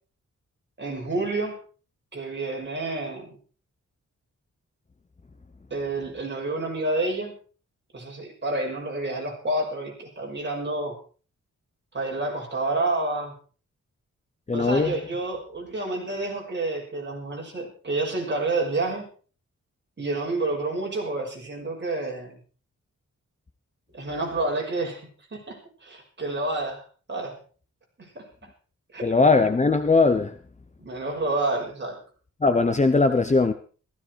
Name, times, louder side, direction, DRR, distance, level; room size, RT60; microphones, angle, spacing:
voice 1, 0.8-1.6 2.1-3.4 5.7-7.4 7.9-11.0 11.9-13.3 14.5-19.1 20.0-22.4 23.9-26.8 27.1-27.4 28.0-28.3 28.9-29.1 30.8-32.0, right 2 dB, 35° right, 6.1 m, -29 dB
voice 2, 14.5-15.0 29.0-30.4 32.4-33.5, left 3 dB, 25° left, 0.9 m, -20 dB
15.5 x 15.0 x 4.8 m
wide cardioid pair, 160°, 30 cm